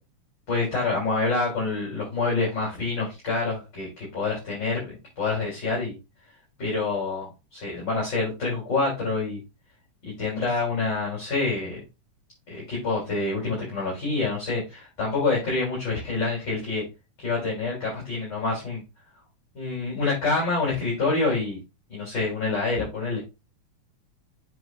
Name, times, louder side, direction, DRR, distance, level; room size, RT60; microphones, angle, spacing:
voice 1, 0.5-6.0 6.6-9.4 10.0-11.8 12.5-16.8 17.2-18.8 19.5-21.6 21.9-23.3, left 3 dB, 35° left, -4 dB, 3.7 m, -27 dB
7.7 x 6.4 x 2.4 m, 0.25 s
omnidirectional pair, 3.6 m